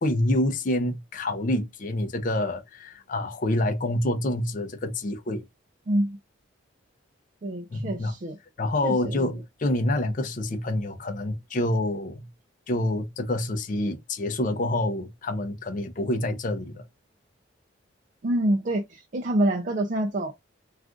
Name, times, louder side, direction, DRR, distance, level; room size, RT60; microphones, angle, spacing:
voice 1, 0.0-5.4 7.7-8.1 8.6-12.3 12.7-16.9, left 1 dB, 40° left, 0.5 m, -27 dB
voice 2, 5.9-6.2 7.4-8.4 8.8-9.3 18.2-20.3, right 1 dB, 40° right, 0.4 m, -26 dB
2.4 x 2.4 x 3.6 m
head